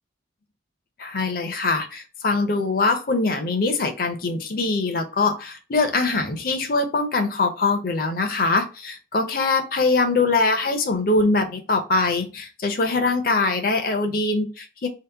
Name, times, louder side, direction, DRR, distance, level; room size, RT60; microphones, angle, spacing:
voice 1, 1.0-14.9, left 3 dB, 50° left, 5 dB, 0.5 m, -23 dB
2.8 x 2.1 x 3.3 m, 0.32 s
head